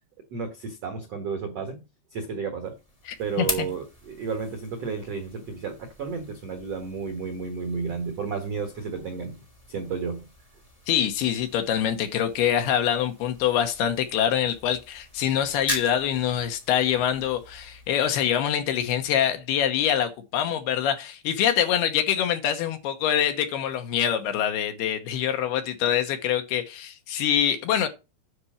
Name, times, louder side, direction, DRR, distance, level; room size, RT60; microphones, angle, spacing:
voice 1, 0.3-1.8 2.1-2.8 3.2-9.3 9.7-10.3, right 5 dB, 85° right, 1.3 m, -32 dB
sound 1, 2.6-19.6, left 1 dB, 10° left, 2.2 m, -41 dB
voice 2, 3.1-3.7 10.9-27.9, left 9 dB, 70° left, 2.8 m, -25 dB
10.0 x 4.4 x 7.1 m
omnidirectional pair, 5.2 m